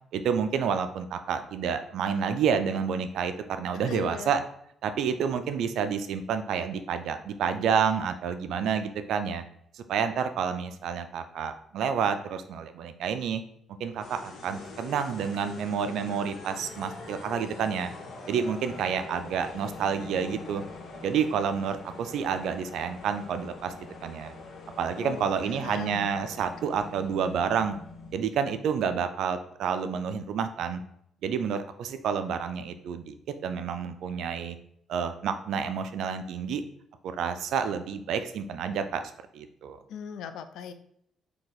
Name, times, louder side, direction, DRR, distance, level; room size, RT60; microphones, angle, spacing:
voice 1, 0.1-4.4 4.8-9.4 9.7-13.4 13.8-17.9 18.3-20.6 21.0-23.7 24.0-24.3 24.8-27.8 28.1-30.8 31.2-33.1 33.4-34.6 34.9-36.6 37.0-39.0 39.3-39.8, right 7 dB, 80° right, 9 dB, 0.4 m, -29 dB
voice 2, 3.7-4.3 25.0-26.1 39.9-40.7, left 7 dB, 85° left, 10 dB, 0.4 m, -39 dB
sound 1, 14.0-28.3, left 3 dB, 65° left, 0.9 m, -44 dB
3.9 x 2.8 x 4.1 m, 0.71 s
cardioid pair, 90°, 0 cm